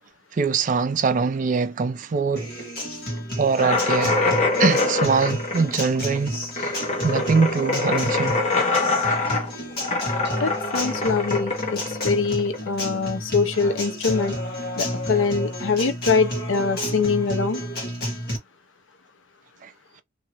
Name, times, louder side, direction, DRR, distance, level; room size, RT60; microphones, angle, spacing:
voice 1, 0.3-2.5 3.4-4.2 4.6-6.7 7.0-8.4 19.6-19.7, right 5 dB, 40° right, 0.3 m, -23 dB
Acoustic guitar, 2.4-18.4, equal, 50° left, 1.3 m, -31 dB
sound 1, 3.6-13.0, left 3 dB, 35° left, 0.8 m, -24 dB
voice 2, 10.4-14.4 14.8-17.6, left 4 dB, 70° left, 0.6 m, -23 dB
2.8 x 2.7 x 2.8 m
head